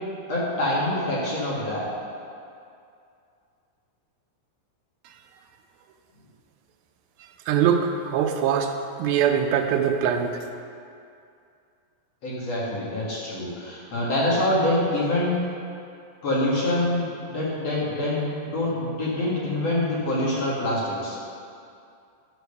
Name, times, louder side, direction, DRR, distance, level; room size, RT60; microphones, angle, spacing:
voice 1, 0.3-1.8 12.2-15.3 16.2-21.2, left 1 dB, 50° left, -7 dB, 2.7 m, -25 dB
voice 2, 7.5-8.7 9.0-10.4, right 8 dB, 85° right, 5 dB, 2.5 m, -22 dB
12.0 x 4.7 x 6.7 m, 2.5 s
omnidirectional pair, 4.2 m